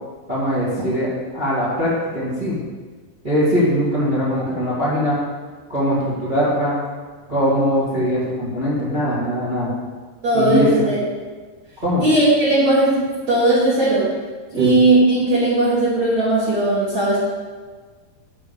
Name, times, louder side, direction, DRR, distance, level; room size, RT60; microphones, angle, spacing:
voice 1, 0.3-2.6 3.2-5.2 5.7-6.8 7.3-9.7 10.3-10.9 11.8-12.0 14.5-14.7, equal, 20° right, -9 dB, 1.5 m, -21 dB
voice 2, 10.2-11.0 12.0-14.1 14.5-17.2, right 2 dB, 50° right, -11 dB, 3.1 m, -17 dB
7.2 x 5.9 x 7.0 m, 1.4 s
omnidirectional pair, 4.7 m